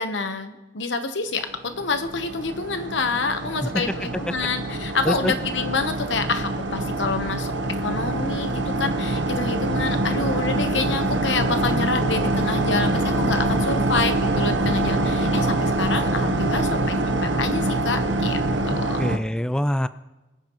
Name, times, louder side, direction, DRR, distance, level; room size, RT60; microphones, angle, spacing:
voice 1, 0.0-7.5 7.8-18.4 18.7-19.0, left 4 dB, 90° left, 8 dB, 1.1 m, -27 dB
sound 1, 1.7-19.2, right 2 dB, 85° right, 0.9 m, -24 dB
voice 2, 18.7-19.9, equal, 5° left, 13 dB, 0.3 m, -25 dB
22.0 x 9.4 x 3.1 m, 1.1 s
head